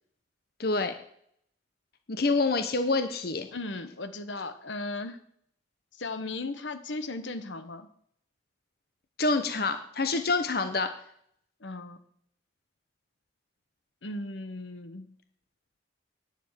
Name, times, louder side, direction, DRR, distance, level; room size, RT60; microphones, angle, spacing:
voice 1, 0.6-0.9 2.1-3.5 9.2-10.9, left 3 dB, 55° left, 8 dB, 0.9 m, -27 dB
voice 2, 3.5-5.2 6.0-7.9 11.6-12.0 14.0-15.1, left 2 dB, 80° left, 11 dB, 1.1 m, -36 dB
10.5 x 7.2 x 9.0 m, 0.68 s
head